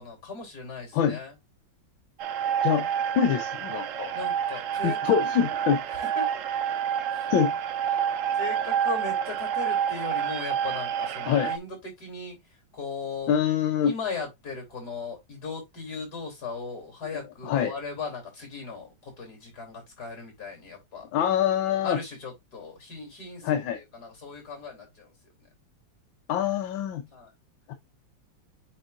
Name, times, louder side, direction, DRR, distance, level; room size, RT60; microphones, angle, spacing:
voice 1, 0.0-1.3 4.1-5.5 5.9-6.3 7.1-7.3 8.3-12.4 12.7-13.3 13.8-21.1 21.8-25.1 27.1-27.3, left 4 dB, 55° left, 3.7 m, -38 dB
sound 1, 2.2-11.6, right 9 dB, 75° right, 0.7 m, -28 dB
voice 2, 3.1-4.1 4.8-5.8 7.3-7.5 11.3-11.5 13.3-13.9 17.4-17.7 21.1-22.0 23.4-23.8 26.3-27.0 27.7-27.8, left 9 dB, 80° left, 1.6 m, -25 dB
8.3 x 4.5 x 2.5 m
omnidirectional pair, 2.1 m